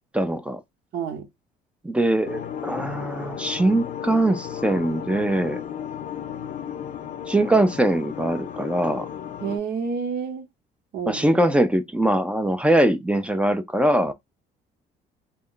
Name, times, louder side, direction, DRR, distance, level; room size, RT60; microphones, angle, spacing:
voice 1, 0.1-0.6 1.8-5.6 7.3-9.1 11.1-14.1, right 1 dB, 5° right, 0.4 m, -22 dB
voice 2, 0.9-1.3 9.4-10.5 10.9-11.3, right 6 dB, 65° right, 0.8 m, -29 dB
sound 1, 2.2-9.6, left 9 dB, 50° left, 0.5 m, -34 dB
2.2 x 2.1 x 3.7 m
cardioid pair, 110°, 17 cm